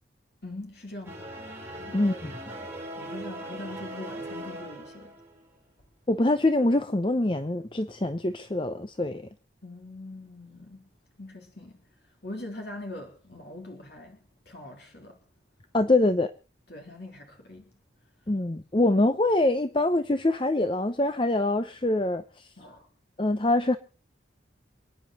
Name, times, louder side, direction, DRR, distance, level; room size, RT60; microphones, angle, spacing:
voice 1, 0.4-1.3 1.8-2.0 3.0-5.1 9.6-10.9 11.2-11.8 12.2-15.2 16.7-17.7 22.6-22.9, left 2 dB, 55° left, 3.7 m, -42 dB
sound 1, 1.0-5.5, right 1 dB, 10° right, 5.7 m, -40 dB
voice 2, 1.9-2.4 6.1-9.3 15.7-16.3 18.3-22.5 23.2-23.8, left 2 dB, 25° left, 0.7 m, -24 dB
28.5 x 10.0 x 4.2 m
head